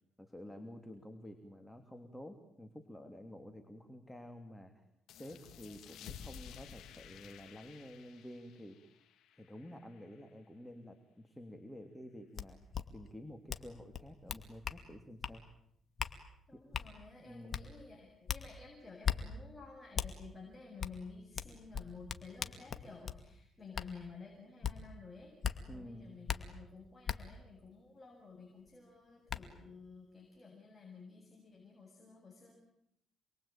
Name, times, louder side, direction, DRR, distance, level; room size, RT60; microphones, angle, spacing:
voice 1, 0.2-4.8 5.1-8.9 9.3-12.6 12.9-15.5 17.2-17.7 25.7-26.2, left 1 dB, 5° left, 6 dB, 3.0 m, -50 dB
sound 1, 5.1-10.3, left 8 dB, 80° left, 2.7 m, -53 dB
sound 2, 12.4-12.5 12.7-12.8 13.5-13.7 13.9-14.8 15.2-15.4 16.0-16.1 16.7-16.9 17.5-17.6 18.3-18.4 19.0-19.2 20.0-20.1 20.8-20.9 21.4-23.2 23.7-23.9 24.6-24.7 25.4-25.6 26.3-26.4 27.1-27.2 28.7-28.8 29.3-29.4, left 8 dB, 50° left, 2.4 m, -37 dB
voice 2, 16.5-25.3 25.6-32.5, left 4 dB, 25° left, 0 dB, 7.6 m, -53 dB
28.5 x 21.5 x 9.0 m, 0.77 s
cardioid pair, 90°, 0 cm